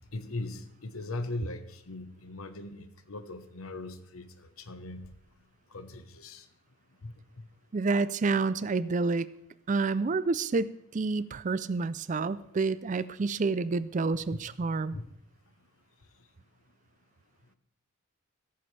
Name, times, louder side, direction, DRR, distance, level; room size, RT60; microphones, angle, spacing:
voice 1, 0.1-4.3 4.6-5.1 5.7-6.4 7.0-7.1 14.9-15.0, left 2 dB, 85° left, 10 dB, 1.1 m, -39 dB
voice 2, 7.7-9.3 9.7-15.0, right 4 dB, 35° right, 17 dB, 0.4 m, -29 dB
15.0 x 14.0 x 3.3 m, 0.73 s
head